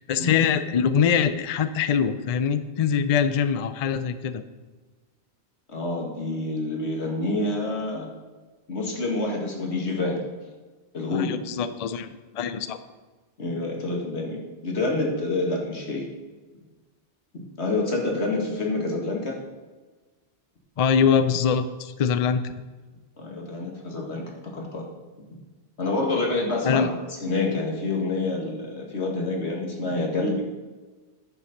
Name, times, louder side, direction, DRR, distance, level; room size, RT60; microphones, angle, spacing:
voice 1, 0.0-4.4 11.1-12.8 20.8-22.4 26.6-26.9, left 7 dB, 45° left, 12 dB, 0.5 m, -23 dB
voice 2, 5.7-8.1 8.7-10.2 10.9-11.3 13.4-16.1 17.3-19.4 23.2-24.8 25.8-26.9 27.2-30.4, left 2 dB, 75° left, 0 dB, 2.2 m, -27 dB
9.7 x 7.0 x 5.2 m, 1.3 s
omnidirectional pair, 1.1 m